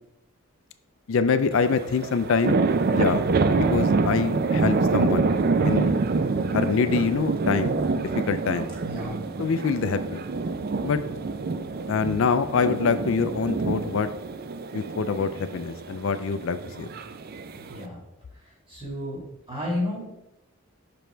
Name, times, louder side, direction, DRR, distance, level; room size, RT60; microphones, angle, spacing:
voice 1, 1.1-2.6 2.9-3.2 3.6-5.3 5.6-5.9 6.5-8.7 9.4-10.2 10.8-11.0 11.9-14.1 14.7-16.9, left 5 dB, 65° left, 11 dB, 0.4 m, -25 dB
sound 1, 1.5-17.8, right 4 dB, 45° right, 0.4 m, -26 dB
voice 2, 8.8-9.2 16.7-16.9 17.5-18.0 18.3-20.0, left 1 dB, 25° right, -4 dB, 2.5 m, -33 dB
6.0 x 5.2 x 4.4 m, 0.86 s
head